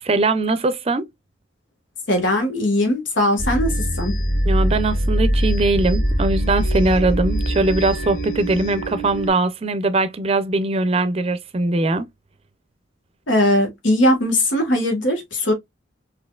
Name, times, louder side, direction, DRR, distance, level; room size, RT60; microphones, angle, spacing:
voice 1, 0.0-1.1 4.4-12.1, right 2 dB, 35° right, 0.5 m, -21 dB
voice 2, 2.1-4.1 13.3-15.5, left 1 dB, 85° left, 1.5 m, -19 dB
sound 1, 3.4-9.3, equal, 50° left, 1.8 m, -22 dB
4.2 x 2.7 x 2.3 m
head